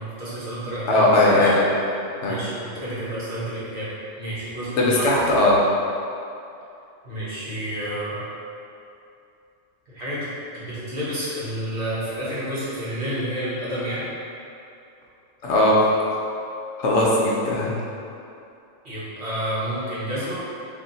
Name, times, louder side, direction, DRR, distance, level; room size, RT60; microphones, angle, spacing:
voice 1, 0.0-1.5 2.2-5.1 7.0-8.2 9.9-10.3 10.5-14.0 18.8-20.4, right 1 dB, 55° right, -11 dB, 1.4 m, -30 dB
voice 2, 0.9-1.7 2.2-2.4 4.8-5.6 15.4-15.8 16.8-17.7, left 1 dB, 70° left, -4 dB, 0.9 m, -18 dB
3.2 x 2.7 x 3.9 m, 2.6 s
omnidirectional pair, 1.3 m